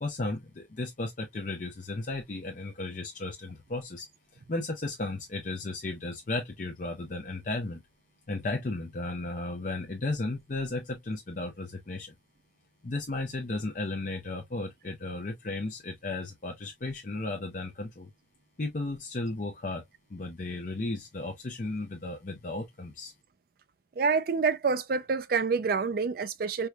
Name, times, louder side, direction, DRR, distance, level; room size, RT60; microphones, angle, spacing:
voice 1, 0.0-7.8 8.3-12.1 12.8-18.1 18.6-19.8 20.1-23.1, left 2 dB, 45° left, 0.6 m, -34 dB
voice 2, 24.0-26.7, right 5 dB, 50° right, 0.4 m, -27 dB
4.5 x 2.2 x 2.3 m
head